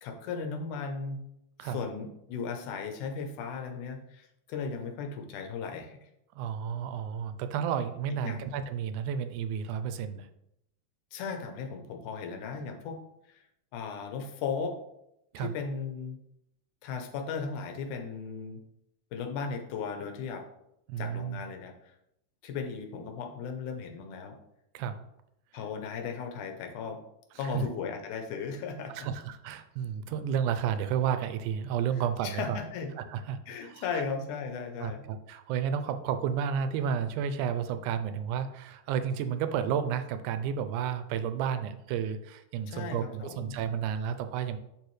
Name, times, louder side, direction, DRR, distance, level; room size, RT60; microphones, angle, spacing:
voice 1, 0.0-1.2 1.6-6.1 8.2-8.5 11.1-13.0 13.3-13.4 13.7-14.8 15.4-16.2 16.8-18.6 19.1-20.5 21.0-22.0 22.4-24.4 25.5-27.0 27.4-29.1 32.2-32.9 33.5-35.0 42.7-43.6, left 5 dB, 80° left, 5 dB, 2.4 m, -36 dB
voice 2, 6.3-10.3 15.3-15.5 20.9-21.4 24.7-25.0 27.5-27.6 29.0-32.6 33.1-34.0 34.8-44.6, right 8 dB, 85° right, 9 dB, 2.1 m, -32 dB
10.0 x 4.6 x 3.2 m, 0.80 s
omnidirectional pair, 3.5 m